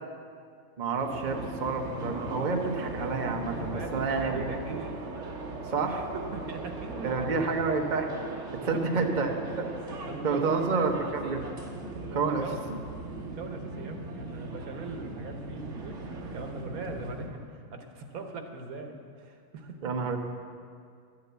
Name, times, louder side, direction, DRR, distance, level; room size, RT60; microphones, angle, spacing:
voice 1, 0.8-4.4 5.7-6.1 7.0-8.1 8.6-9.7 10.2-11.4 12.1-12.8 19.8-20.2, right 4 dB, 40° right, 3 dB, 0.9 m, -29 dB
sound 1, 1.0-17.3, right 2 dB, 60° right, 1.4 m, -38 dB
voice 2, 3.7-5.0 6.1-7.6 8.6-9.1 9.4-9.5 9.9-10.9 12.1-12.6 13.3-19.9, right 4 dB, 80° right, 5 dB, 1.5 m, -40 dB
12.0 x 6.8 x 8.1 m, 2.2 s
omnidirectional pair, 1.5 m